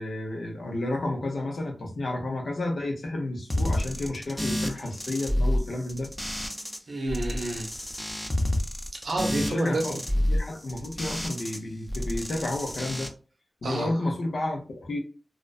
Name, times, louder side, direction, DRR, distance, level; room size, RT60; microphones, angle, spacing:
voice 1, 0.0-6.1 9.4-13.1 13.6-15.0, left 1 dB, 80° left, 0.6 m, -31 dB
sound 1, 3.5-6.8 7.1-11.6 11.9-13.1, left 1 dB, 15° left, 0.5 m, -29 dB
voice 2, 6.9-7.7 8.9-10.0 13.6-13.9, right 2 dB, 80° right, 0.6 m, -29 dB
2.4 x 2.1 x 2.3 m
cardioid pair, 40°, 0 cm